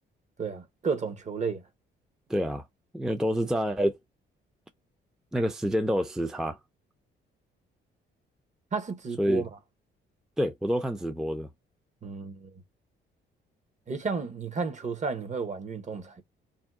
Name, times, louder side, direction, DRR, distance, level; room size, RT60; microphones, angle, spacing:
voice 1, 0.4-1.6 8.7-9.5 12.0-12.5 13.9-16.2, right 5 dB, 35° right, 0.8 m, -32 dB
voice 2, 2.3-2.6 2.9-4.0 5.3-6.6 9.2-9.5 10.4-11.5, equal, 5° right, 0.4 m, -27 dB
2.7 x 2.1 x 3.5 m
cardioid pair, 90°, 20 cm